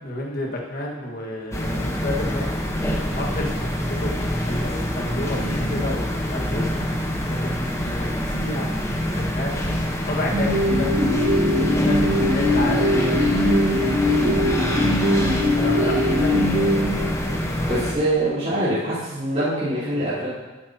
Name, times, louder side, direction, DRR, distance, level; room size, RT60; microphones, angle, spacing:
voice 1, 0.0-2.5 3.1-6.6 7.3-9.6 10.1-10.9 11.5-13.4 15.5-16.6, left 1 dB, 45° left, -1 dB, 1.6 m, -31 dB
sound 1, 1.5-17.9, equal, 15° left, 0.9 m, -25 dB
sound 2, 10.3-17.5, left 1 dB, 60° right, 1.5 m, -21 dB
voice 2, 17.7-20.3, right 1 dB, 30° right, -12 dB, 3.6 m, -24 dB
12.0 x 9.0 x 2.8 m, 1.2 s
head